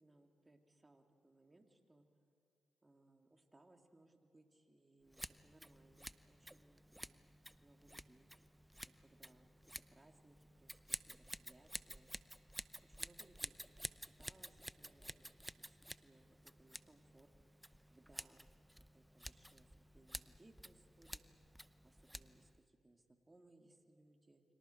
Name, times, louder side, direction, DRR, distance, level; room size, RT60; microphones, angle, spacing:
voice 1, 0.0-2.0 2.8-8.3 9.0-12.1 12.8-13.7 14.0-17.3 17.6-21.2 21.8-24.4, right 2 dB, 25° right, 4 dB, 2.9 m, -68 dB
Scissors, 5.1-22.6, equal, 5° right, 0.8 m, -52 dB
29.5 x 25.0 x 4.7 m, 2.6 s
hypercardioid pair, 40°, 0 cm